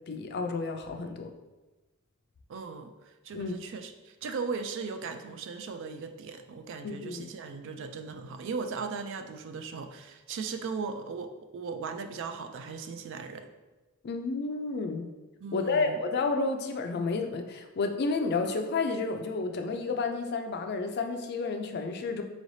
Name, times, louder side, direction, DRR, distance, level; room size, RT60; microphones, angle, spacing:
voice 1, 0.1-1.3 3.3-3.5 6.8-7.3 14.0-15.1 15.5-22.2, left 3 dB, 50° left, 5 dB, 0.4 m, -31 dB
voice 2, 2.5-13.5 15.4-16.0, right 5 dB, 60° right, 8 dB, 0.4 m, -38 dB
4.8 x 3.1 x 2.7 m, 1.2 s
head